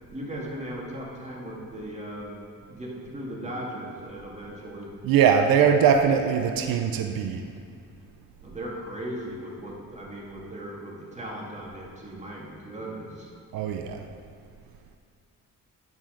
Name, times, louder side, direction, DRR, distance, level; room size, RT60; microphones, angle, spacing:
voice 1, 0.1-4.9 8.4-13.3, right 1 dB, 20° right, -4 dB, 2.1 m, -37 dB
voice 2, 5.0-7.4 13.5-14.0, right 7 dB, 90° right, 6 dB, 0.6 m, -21 dB
9.6 x 6.1 x 5.1 m, 2.3 s
cardioid pair, 95°, 34 cm